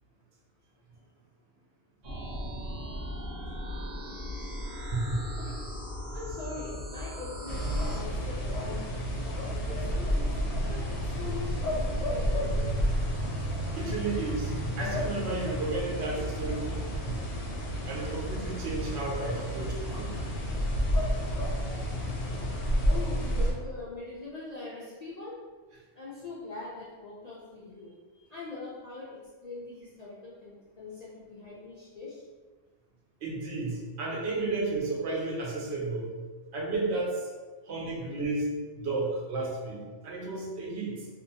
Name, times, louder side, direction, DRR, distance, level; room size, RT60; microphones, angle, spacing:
sound 1, 2.0-8.0, left 1 dB, 40° right, 0.7 m, -38 dB
voice 1, 4.9-5.2 13.7-17.3 17.9-20.2 33.2-36.1 36.5-37.3 37.7-41.1, right 3 dB, 70° right, -2 dB, 0.9 m, -33 dB
voice 2, 6.1-8.8 9.2-10.4 10.6-12.9 22.8-25.4 25.9-32.2, left 3 dB, 55° left, -8 dB, 0.4 m, -42 dB
sound 2, 7.5-23.5, equal, 75° left, 0.9 m, -30 dB
2.6 x 2.1 x 2.7 m, 1.4 s
omnidirectional pair, 1.2 m